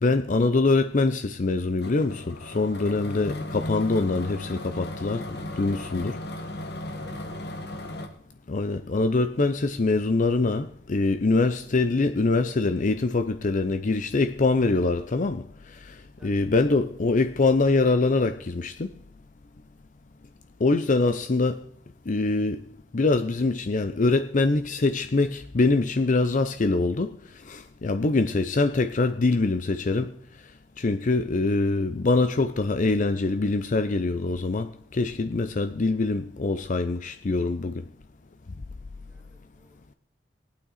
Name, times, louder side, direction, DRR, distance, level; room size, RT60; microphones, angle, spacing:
voice 1, 0.0-5.2 5.6-6.2 8.5-18.9 20.6-21.6 22.1-22.6 22.9-27.2 27.4-30.1 30.8-37.8, left 3 dB, 45° left, 0.6 m, -24 dB
sound 1, 1.8-8.1, left 1 dB, 60° left, 1.6 m, -36 dB
voice 2, 6.9-7.6 16.2-16.4 39.1-39.8, equal, 5° right, 2.8 m, -53 dB
19.5 x 8.9 x 4.1 m
head